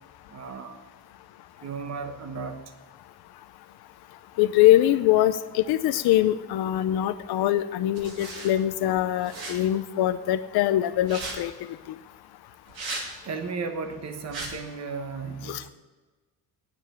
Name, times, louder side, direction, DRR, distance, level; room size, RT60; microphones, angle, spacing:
voice 1, 0.3-0.8 1.6-2.6 13.2-15.7, right 4 dB, 45° right, 7 dB, 1.2 m, -35 dB
voice 2, 4.4-11.5 11.9-12.0 15.5-15.6, left 13 dB, 90° left, 11 dB, 0.6 m, -23 dB
sound 1, 7.9-8.5 9.2-9.5 11.0-11.4 12.7-13.1 14.3-14.5, right 3 dB, 80° right, 2.9 m, -35 dB
9.6 x 7.6 x 9.0 m, 1.3 s
cardioid pair, 140°, 36 cm